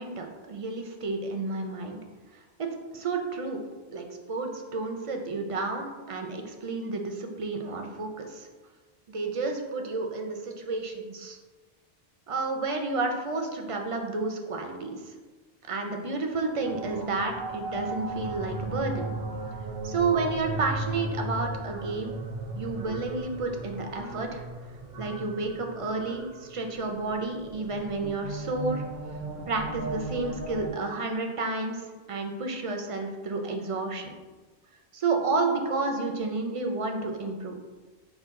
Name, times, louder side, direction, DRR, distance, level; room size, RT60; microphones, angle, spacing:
voice 1, 0.0-2.0 2.6-3.6 3.9-8.5 9.1-11.4 12.3-15.1 15.7-19.1 19.8-22.2 22.6-24.4 25.0-28.8 29.5-34.1 34.9-37.6, right 3 dB, 45° right, 3 dB, 0.4 m, -31 dB
sound 1, 16.6-30.7, right 2 dB, 70° right, 0.8 m, -36 dB
6.1 x 2.2 x 3.6 m, 1.3 s
omnidirectional pair, 1.0 m